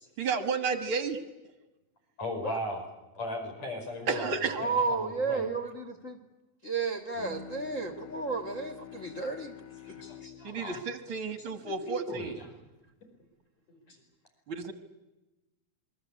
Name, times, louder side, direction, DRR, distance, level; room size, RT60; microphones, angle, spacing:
voice 1, 0.2-1.2 4.1-4.6 10.4-12.3 14.5-14.7, right 5 dB, 50° right, 9 dB, 1.7 m, -32 dB
voice 2, 2.2-2.8 3.1-5.5 9.8-10.8 11.6-12.3 13.9-14.0, left 1 dB, 45° left, 4 dB, 6.5 m, -38 dB
voice 3, 4.6-6.2 6.6-9.5 9.9-10.0, right 4 dB, 30° left, 8 dB, 1.5 m, -32 dB
Bowed string instrument, 7.1-12.6, left 9 dB, 85° left, 3.8 m, -49 dB
27.0 x 22.5 x 8.4 m, 1.0 s
omnidirectional pair, 4.2 m